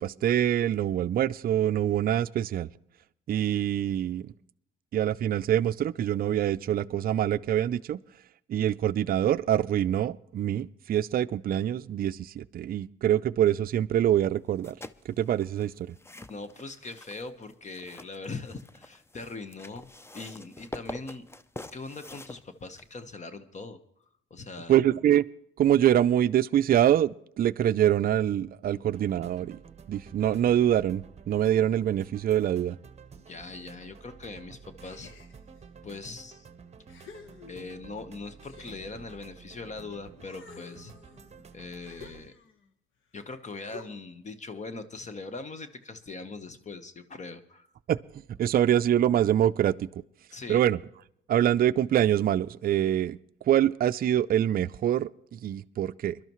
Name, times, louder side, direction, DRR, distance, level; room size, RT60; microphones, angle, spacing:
voice 1, 0.0-2.7 3.3-4.3 4.9-8.0 8.5-14.8 15.2-16.0 24.7-25.3 25.6-29.6 29.9-32.8 47.9-48.0 48.4-49.9 50.5-50.8 51.3-53.2 53.5-56.2, right 11 dB, 50° right, 0.4 m, -25 dB
sound 1, 14.5-23.1, left 2 dB, 10° left, 0.5 m, -46 dB
voice 2, 16.3-19.9 20.1-21.2 21.7-23.8 24.3-24.8 28.7-28.8 33.1-35.1 35.8-36.5 37.5-40.9 41.5-42.4 43.1-47.7 48.4-48.5 50.3-50.6, left 3 dB, 35° left, 1.1 m, -41 dB
sound 2, 28.9-42.3, right 6 dB, 35° right, 0.9 m, -51 dB
sound 3, 34.8-35.7 36.3-36.4 36.9-37.9 38.4-39.8 40.2-42.7 43.7-44.2, left 6 dB, 80° left, 1.3 m, -51 dB
22.5 x 12.0 x 3.1 m
cardioid pair, 90°, 20 cm